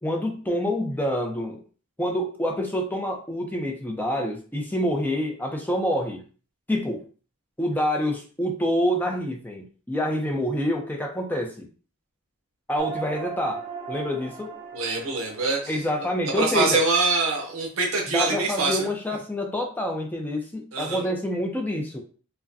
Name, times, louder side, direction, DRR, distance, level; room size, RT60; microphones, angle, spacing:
voice 1, 0.0-1.6 2.0-6.2 6.7-7.0 7.6-11.7 12.7-14.5 15.7-16.8 18.1-22.0, left 1 dB, 10° left, 2 dB, 0.5 m, -27 dB
sound 1, 12.8-17.5, right 6 dB, 25° right, 0.8 m, -38 dB
voice 2, 14.7-15.8 16.4-18.9 20.7-21.0, right 3 dB, 65° right, 0 dB, 0.9 m, -24 dB
4.9 x 2.2 x 2.6 m, 0.39 s
head